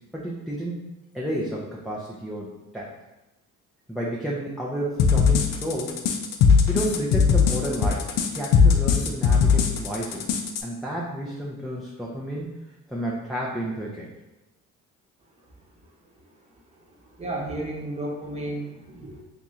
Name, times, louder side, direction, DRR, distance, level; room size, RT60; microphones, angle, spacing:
voice 1, 0.1-0.9 1.1-2.9 3.9-6.0 6.7-8.0 8.4-10.3 10.6-12.5 12.9-14.1, equal, ahead, -5 dB, 0.6 m, -31 dB
sound 1, 5.0-10.6, left 6 dB, 70° left, 0.6 m, -19 dB
voice 2, 16.7-19.2, right 1 dB, 20° right, -3 dB, 1.1 m, -33 dB
2.9 x 2.8 x 3.6 m, 1.0 s
supercardioid pair, 75°, 35 cm